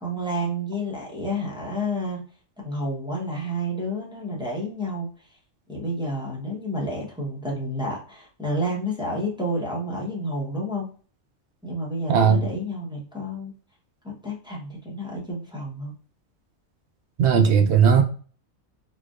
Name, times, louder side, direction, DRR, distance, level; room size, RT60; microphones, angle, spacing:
voice 1, 0.0-2.2 2.6-5.1 5.7-10.9 11.6-13.5 14.0-15.9, equal, 5° right, 0.8 m, -30 dB
voice 2, 12.1-12.4 17.2-18.0, right 7 dB, 65° right, 0.8 m, -17 dB
4.1 x 2.7 x 2.4 m
omnidirectional pair, 1.4 m